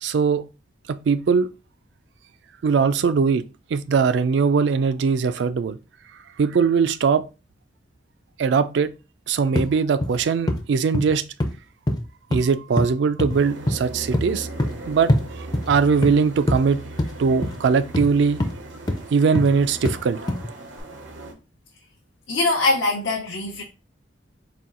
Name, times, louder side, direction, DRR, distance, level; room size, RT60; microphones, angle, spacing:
voice 1, 0.0-0.5 0.9-1.5 2.6-5.8 6.4-7.3 8.4-9.0 9.3-11.3 12.3-14.5 14.9-16.9 17.2-18.5 19.1-20.2, right 5 dB, 70° right, 0.3 m, -21 dB
sound 1, 9.5-9.7 10.0-10.2 10.5-10.6 10.9-11.1 11.4-11.5 11.9-12.4 12.8-12.9 13.2-13.4 13.7-13.8 14.1-14.3 14.6-14.8 15.1-15.2 15.5-16.2 16.5-16.6 17.0-17.1 17.4-17.6 17.9-18.1 18.4-18.5 18.9-19.0 19.3-19.5 19.8-20.0 20.3-20.5 20.8-20.9, left 1 dB, 20° left, 0.4 m, -23 dB
sound 2, 13.3-21.3, right 2 dB, 85° right, 0.9 m, -38 dB
voice 2, 22.3-23.6, left 2 dB, 85° left, 0.7 m, -22 dB
4.2 x 2.3 x 3.7 m
head